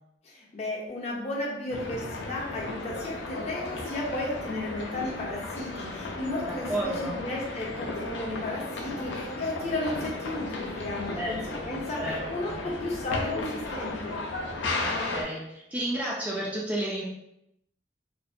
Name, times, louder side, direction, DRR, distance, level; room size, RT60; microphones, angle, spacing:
voice 1, 0.2-14.2, left 2 dB, 40° left, -3 dB, 0.6 m, -34 dB
sound 1, 1.7-15.2, left 2 dB, 85° left, 0.4 m, -34 dB
voice 2, 6.7-7.2 11.2-11.7 12.0-12.6 14.8-17.0, right 1 dB, 10° right, -4 dB, 0.3 m, -32 dB
2.5 x 2.0 x 2.5 m, 0.81 s
head